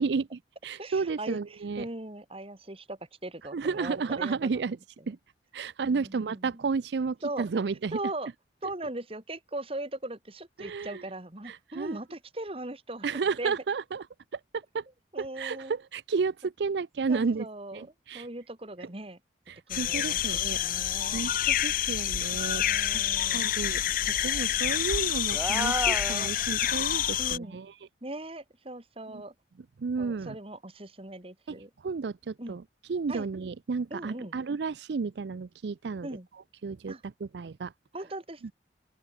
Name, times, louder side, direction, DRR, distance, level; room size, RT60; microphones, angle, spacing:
voice 1, 0.0-1.9 3.5-4.8 5.1-5.2 5.5-8.0 10.6-11.0 11.5-12.0 13.0-14.0 14.3-14.8 15.2-17.5 17.7-18.3 19.5-20.6 21.1-22.6 22.9-23.0 23.3-23.8 24.2-27.7 29.1-29.2 29.8-30.4 31.5-31.6 31.8-32.6 32.9-36.1 36.6-37.7, right 4 dB, 70° right, 0.5 m, -32 dB
voice 2, 0.8-4.6 5.8-6.6 7.2-7.5 7.9-8.3 8.6-13.1 13.4-13.5 15.1-15.7 17.1-17.9 18.1-19.2 19.7-21.2 22.5-23.6 27.2-27.6 28.0-29.3 30.0-31.7 32.4-32.6 33.1-33.3 33.9-34.4 36.0-36.3 36.9-37.0 37.9-38.5, right 2 dB, 30° right, 2.4 m, -39 dB
sound 1, 19.7-27.4, left 11 dB, 50° left, 0.6 m, -28 dB
sound 2, 25.3-26.8, right 1 dB, 10° right, 0.8 m, -33 dB
open air
head